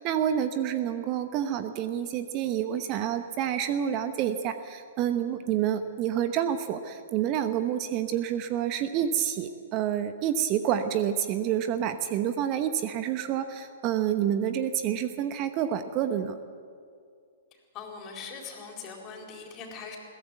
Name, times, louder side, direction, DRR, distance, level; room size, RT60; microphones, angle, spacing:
voice 1, 0.0-16.4, right 10 dB, 35° right, 10 dB, 1.0 m, -28 dB
voice 2, 17.7-20.0, left 5 dB, 30° left, 2 dB, 4.4 m, -41 dB
22.0 x 16.5 x 8.1 m, 2.2 s
figure-of-eight pair, 115°, 0 cm